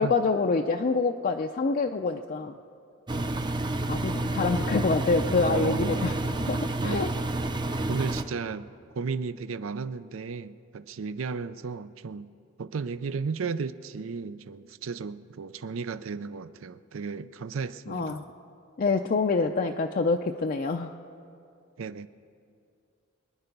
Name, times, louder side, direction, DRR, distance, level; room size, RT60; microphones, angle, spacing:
voice 1, 0.0-2.6 3.9-6.1 6.5-7.1 17.9-18.2 18.8-20.9, left 4 dB, 45° left, 3 dB, 0.5 m, -26 dB
Engine, 3.1-8.2, right 2 dB, 20° right, 0.6 m, -29 dB
voice 2, 5.4-6.2 6.8-7.1 7.9-12.3 12.6-18.2 21.8-22.1, right 5 dB, 75° right, 14 dB, 0.5 m, -34 dB
24.0 x 9.8 x 5.3 m, 2.5 s
head